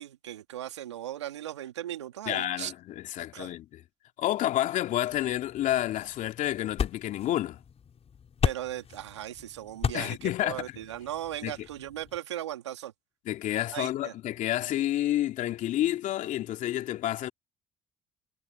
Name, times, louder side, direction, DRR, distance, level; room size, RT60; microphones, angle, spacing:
voice 1, 0.0-2.7 3.3-3.5 8.4-12.9 13.7-14.1, right 12 dB, 90° right, 2.5 m, -37 dB
voice 2, 2.3-3.8 4.2-7.6 9.9-10.8 11.4-11.7 13.2-17.3, left 13 dB, 65° left, 2.8 m, -29 dB
sound 1, 5.1-12.2, left 7 dB, 45° left, 6.0 m, -36 dB
hypercardioid pair, 50°, 14 cm